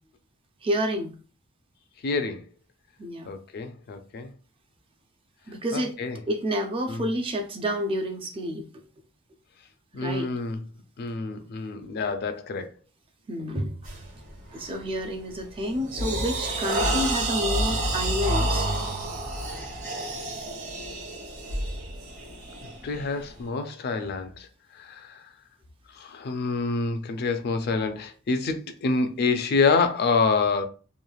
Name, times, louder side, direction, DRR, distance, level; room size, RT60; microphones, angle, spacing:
voice 1, 0.6-1.1 3.0-3.3 5.5-5.9 6.3-8.7 9.9-10.3 13.3-13.8 14.5-18.7, equal, 25° right, 0.4 m, -29 dB
voice 2, 2.0-2.5 3.3-4.3 5.7-6.2 6.9-7.1 9.9-10.6 11.0-12.7 22.8-24.5 24.7-25.3 25.9-30.6, left 4 dB, 50° left, 0.4 m, -27 dB
sound 1, 13.8-14.1 14.6-14.9 15.3-23.4, right 1 dB, 65° right, 1.2 m, -29 dB
3.0 x 2.4 x 2.3 m
head